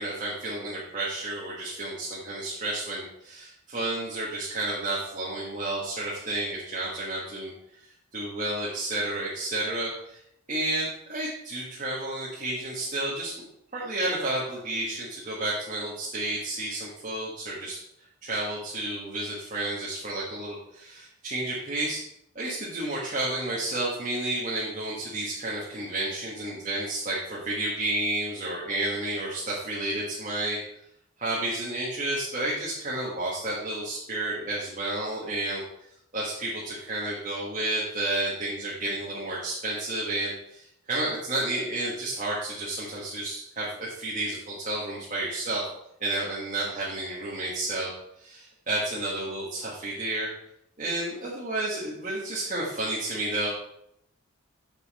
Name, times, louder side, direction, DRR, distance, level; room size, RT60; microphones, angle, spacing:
voice 1, 0.0-7.5 7.8-10.2 10.5-13.4 13.7-17.8 18.2-22.0 22.3-30.6 31.2-35.6 36.1-45.6 46.0-47.9 48.2-50.3 50.8-53.5, right 2 dB, 35° right, -6 dB, 1.5 m, -31 dB
7.3 x 5.5 x 4.2 m, 0.75 s
head